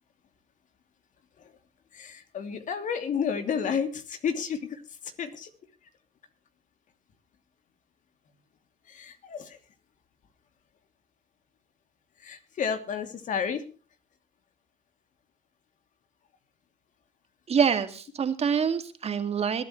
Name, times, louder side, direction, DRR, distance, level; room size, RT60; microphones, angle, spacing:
voice 1, 1.9-5.5 8.9-9.6 12.2-13.6, left 7 dB, 55° left, 8 dB, 2.8 m, -31 dB
voice 2, 17.5-19.6, right 6 dB, 40° right, 8 dB, 2.3 m, -26 dB
21.5 x 12.0 x 3.2 m, 0.36 s
cardioid pair, 90°, 16 cm